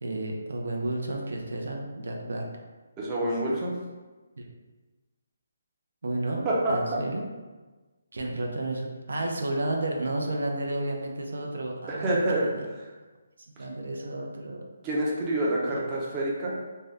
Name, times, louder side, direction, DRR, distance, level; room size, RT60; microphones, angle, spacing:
voice 1, 0.0-2.5 4.4-4.5 6.0-7.3 8.1-12.7 13.5-14.6 15.7-16.2, right 2 dB, 80° right, 1 dB, 0.5 m, -32 dB
voice 2, 3.0-3.7 6.4-7.0 11.9-12.5 14.8-16.6, right 1 dB, 20° right, -5 dB, 0.5 m, -27 dB
2.6 x 2.2 x 3.4 m, 1.3 s
hypercardioid pair, 165°, 0 cm